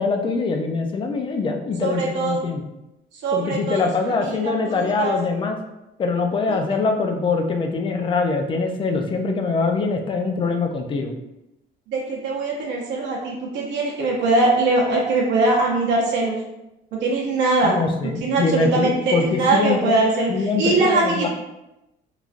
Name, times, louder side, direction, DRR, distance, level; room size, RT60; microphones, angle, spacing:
voice 1, 0.0-2.6 3.3-5.6 6.0-11.1 17.6-20.0 20.3-21.3, left 4 dB, 30° left, 4 dB, 0.3 m, -23 dB
voice 2, 1.8-2.5 3.2-3.9 4.2-5.1 6.5-6.6 11.9-16.4 16.9-17.8 18.2-21.3, right 3 dB, 80° right, -3 dB, 0.7 m, -21 dB
3.1 x 2.4 x 2.5 m, 0.91 s
cardioid pair, 135°, 18 cm